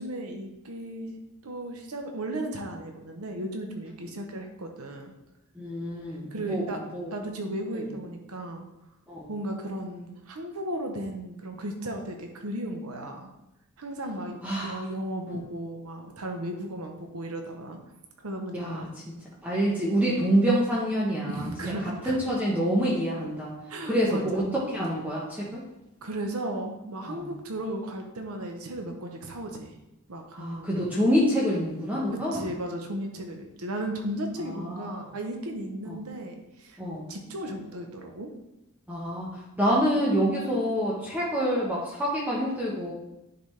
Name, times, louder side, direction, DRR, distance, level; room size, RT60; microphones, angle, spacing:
voice 1, 0.0-5.1 6.3-6.8 7.1-8.7 9.3-13.3 13.8-17.8 18.2-18.9 21.3-22.2 23.7-24.5 26.0-29.7 30.1-30.7 32.1-36.8 37.1-38.3, right 1 dB, 80° right, 3 dB, 0.9 m, -35 dB
voice 2, 5.5-6.7 6.9-7.2 7.7-7.9 9.1-9.3 14.4-14.8 15.3-15.4 18.5-18.9 19.4-21.5 21.8-23.5 23.8-25.6 27.1-27.3 30.3-32.4 34.4-35.0 35.9-36.0 36.8-37.1 38.9-42.9, equal, 5° right, -6 dB, 1.1 m, -27 dB
10.5 x 4.1 x 3.3 m, 0.90 s
head